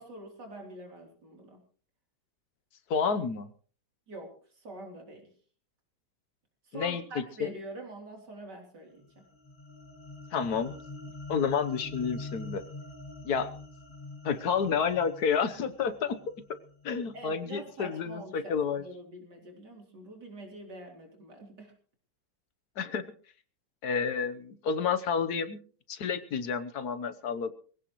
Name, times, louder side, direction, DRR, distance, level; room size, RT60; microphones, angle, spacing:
voice 1, 0.0-1.6 4.1-5.3 6.6-9.3 17.1-21.7, right 1 dB, 85° right, 2 dB, 4.1 m, -45 dB
voice 2, 2.9-3.5 6.7-7.5 10.3-10.7 11.3-12.6 13.2-13.5 14.2-16.2 16.8-18.8 22.8-23.0 23.8-25.6 25.9-27.5, left 6 dB, 70° left, 11 dB, 1.5 m, -30 dB
sound 1, 9.0-17.4, left 2 dB, 35° left, 2.9 m, -45 dB
22.5 x 16.5 x 3.1 m, 0.42 s
omnidirectional pair, 1.8 m